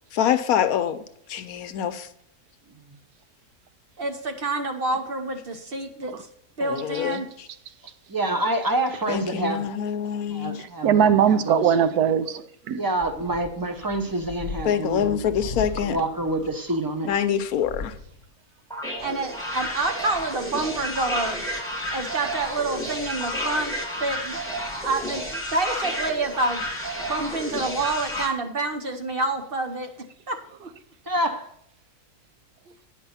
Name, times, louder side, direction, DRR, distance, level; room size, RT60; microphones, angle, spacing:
voice 1, 0.1-1.0 1.3-2.1 6.6-7.5 9.1-10.6 14.6-16.0 17.0-18.0, left 9 dB, 75° left, 1.1 m, -25 dB
voice 2, 4.0-6.2 6.6-7.3 19.0-21.4 21.9-24.4 24.8-26.7 27.1-29.9 30.3-30.7 32.7-32.8, right 2 dB, 45° right, 0.9 m, -28 dB
voice 3, 8.1-9.7 10.3-11.7 12.7-15.2 15.8-17.1 31.1-31.5, right 1 dB, 20° right, 0.7 m, -27 dB
voice 4, 10.8-12.8, right 8 dB, 80° right, 1.2 m, -20 dB
sound 1, 13.0-18.3 19.0-19.1, left 4 dB, 35° left, 1.1 m, -38 dB
sound 2, 18.7-28.3, equal, ahead, 1.7 m, -31 dB
9.3 x 5.4 x 5.6 m
omnidirectional pair, 1.6 m